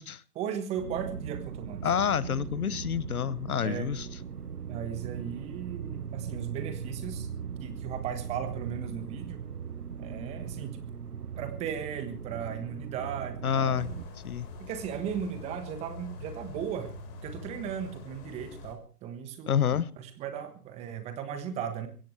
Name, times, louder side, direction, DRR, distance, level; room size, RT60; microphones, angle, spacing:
voice 1, 0.3-2.0 3.6-3.9 4.7-7.3 7.6-9.4 10.0-10.9 11.4-13.8 14.6-16.9 17.2-19.6 20.0-21.9, right 8 dB, 15° right, 1.4 m, -36 dB
sound 1, 0.8-14.0, right 7 dB, 65° right, 1.6 m, -39 dB
voice 2, 1.8-4.1 13.4-13.9 14.2-14.5 19.5-19.9, left 8 dB, 65° left, 0.9 m, -28 dB
sound 2, 13.8-18.7, left 2 dB, 30° left, 4.6 m, -44 dB
23.0 x 16.5 x 3.3 m
figure-of-eight pair, 140°, 48 cm